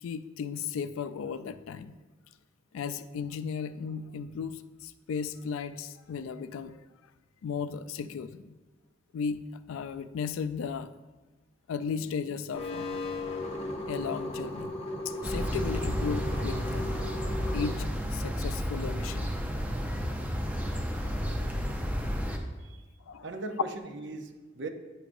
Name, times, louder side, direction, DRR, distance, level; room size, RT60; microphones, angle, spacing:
voice 1, 0.0-2.0 2.7-6.8 7.4-8.6 9.1-9.4 9.7-10.9 11.7-13.0 13.9-14.8 15.1-17.0 17.5-19.3 23.1-23.3, left 6 dB, 85° left, 13 dB, 0.3 m, -35 dB
sound 1, 12.5-17.7, left 1 dB, 30° left, 0.7 m, -36 dB
sound 2, 15.2-22.4, equal, 10° right, 0.5 m, -32 dB
voice 2, 23.2-24.7, right 3 dB, 60° right, 5 dB, 0.6 m, -39 dB
9.7 x 4.8 x 2.6 m, 1.2 s
head